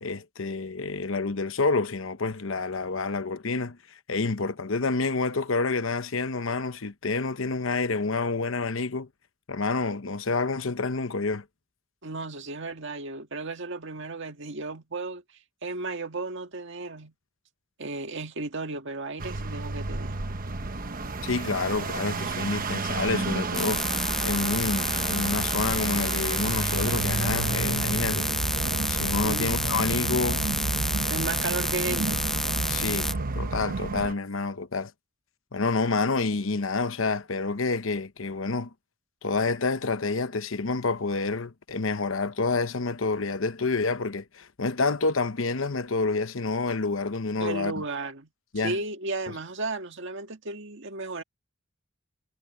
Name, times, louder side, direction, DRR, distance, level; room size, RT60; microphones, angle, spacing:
voice 1, 0.0-3.8 4.1-9.1 9.5-11.4 21.2-28.3 28.9-30.4 32.7-34.9 35.5-38.7 39.2-47.7 48.5-48.8, left 3 dB, 70° left, 1.0 m, -28 dB
voice 2, 12.0-15.2 15.6-17.1 17.8-20.2 29.2-29.5 31.1-32.2 47.4-48.3 48.6-51.2, right 3 dB, 60° right, 1.8 m, -34 dB
sound 1, 19.2-34.1, right 3 dB, 45° right, 1.2 m, -33 dB
sound 2, 23.5-33.1, left 1 dB, ahead, 0.5 m, -29 dB
sound 3, 26.7-34.1, right 3 dB, 85° right, 1.0 m, -32 dB
head